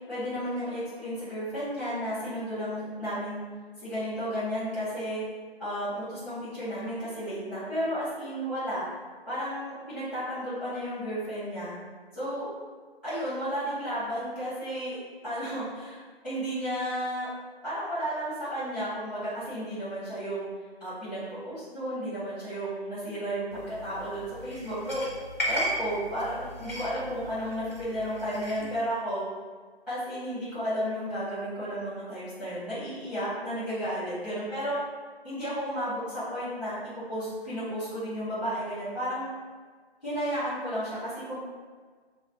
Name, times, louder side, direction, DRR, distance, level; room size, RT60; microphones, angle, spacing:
voice 1, 0.1-3.5 3.8-5.2 5.6-8.9 9.3-11.8 12.1-12.5 13.0-15.0 15.2-17.3 17.6-20.5 20.8-25.0 25.5-29.3 29.9-34.8 35.2-39.3 40.0-41.4, equal, ahead, -12 dB, 1.4 m, -33 dB
sound 1, 23.5-28.7, equal, 15° left, 0.5 m, -36 dB
4.7 x 2.3 x 3.4 m, 1.5 s
figure-of-eight pair, 155°, 32 cm